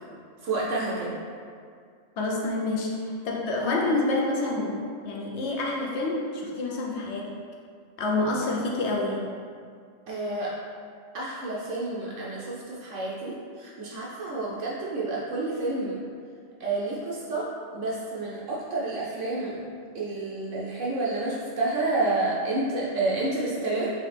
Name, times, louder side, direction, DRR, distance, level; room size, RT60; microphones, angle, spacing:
voice 1, 0.4-1.1 10.1-10.5 11.1-16.0 16.6-17.5 17.7-19.6 19.9-23.9, right 2 dB, 70° right, -5 dB, 0.9 m, -29 dB
voice 2, 2.2-7.4 8.0-9.3, left 2 dB, 65° left, -2 dB, 0.8 m, -28 dB
3.8 x 3.1 x 3.3 m, 2.2 s
omnidirectional pair, 1.4 m